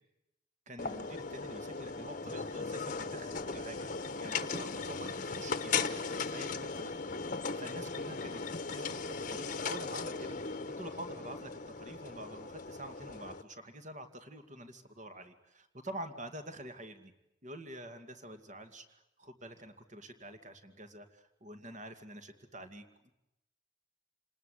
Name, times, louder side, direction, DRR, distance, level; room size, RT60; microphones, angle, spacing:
voice 1, 0.7-6.9 7.6-8.4 8.7-17.1 17.4-23.1, right 1 dB, 40° right, 8 dB, 2.3 m, -47 dB
sound 1, 0.8-13.4, left 4 dB, 40° left, 1.1 m, -38 dB
28.5 x 20.0 x 8.3 m, 0.87 s
head